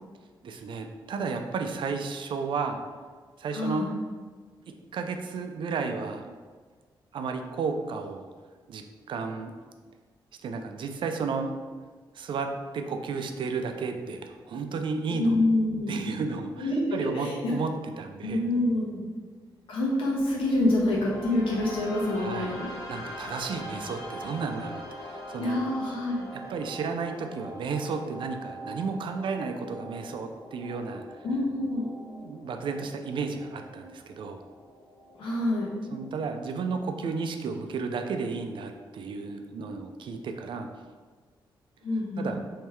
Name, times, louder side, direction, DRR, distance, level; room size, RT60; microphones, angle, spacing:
voice 1, 0.4-2.8 3.4-3.9 4.7-6.3 7.1-8.3 8.7-9.5 10.4-11.5 12.1-12.5 12.7-15.4 15.9-17.7 18.0-18.4 22.1-22.5 22.9-25.6 26.3-31.0 32.2-34.4 35.9-40.7 42.2-42.4, right 4 dB, 70° right, 5 dB, 0.4 m, -33 dB
voice 2, 3.5-3.9 15.2-16.0 16.6-17.6 18.2-19.1 19.7-22.7 25.4-26.2 31.2-31.9 35.2-35.7 41.8-42.3, left 1 dB, 85° left, -4 dB, 1.3 m, -26 dB
sound 1, 20.2-36.2, equal, 45° left, 1.4 m, -43 dB
3.6 x 3.1 x 4.5 m, 1.5 s
cardioid pair, 105°, 9 cm